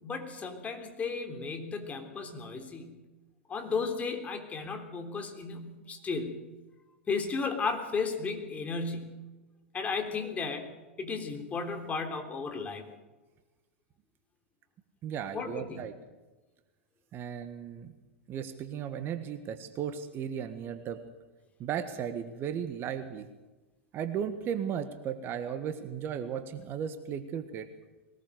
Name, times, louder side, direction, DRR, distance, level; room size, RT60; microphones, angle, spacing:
voice 1, 0.0-3.0 3.5-6.4 7.1-9.2 9.7-10.7 11.0-12.9 15.3-15.8, left 4 dB, 20° left, 5 dB, 3.4 m, -34 dB
voice 2, 15.0-15.9 17.1-17.9 18.3-21.0 21.6-23.3 23.9-27.7, right 8 dB, 35° right, 10 dB, 1.5 m, -35 dB
21.5 x 19.5 x 6.8 m, 1.2 s
figure-of-eight pair, 95°, 7 cm